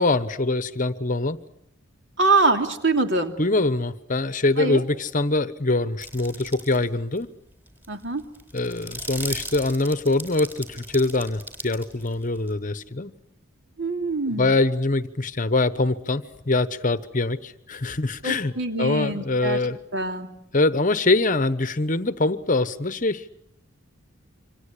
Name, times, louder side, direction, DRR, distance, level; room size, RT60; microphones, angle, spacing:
voice 1, 0.0-1.4 3.4-7.3 8.5-13.1 14.4-18.5 18.8-19.8 20.5-23.2, left 2 dB, 35° left, 14 dB, 1.0 m, -23 dB
voice 2, 2.2-3.3 4.6-4.8 7.9-8.2 13.8-14.5 18.2-19.6 19.9-20.3, right 3 dB, 55° right, 5 dB, 3.0 m, -24 dB
sound 1, 6.0-6.8 7.2-7.3 7.7-12.5, right 1 dB, 10° right, 3.9 m, -37 dB
27.5 x 25.5 x 8.3 m, 0.75 s
head